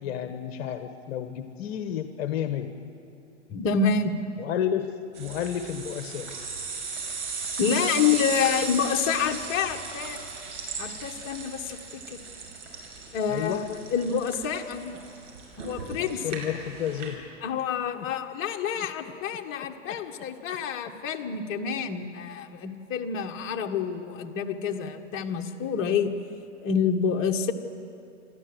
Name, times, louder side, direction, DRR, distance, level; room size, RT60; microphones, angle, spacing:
voice 1, 0.0-2.7 4.4-4.9 5.2-6.3 13.3-13.6 16.0-17.2 17.9-18.1 18.8-18.9 19.9-20.0, left 9 dB, 55° left, 8 dB, 1.3 m, -31 dB
voice 2, 3.5-4.1 7.6-10.2 10.8-11.8 12.1-12.2 13.1-15.0 15.6-16.4 17.4-26.2 26.6-27.5, left 6 dB, 35° left, 3 dB, 1.6 m, -28 dB
sound 1, 5.1-17.1, right 5 dB, 70° right, 5.7 m, -36 dB
27.5 x 12.5 x 8.0 m, 2.6 s
hypercardioid pair, 105°, 37 cm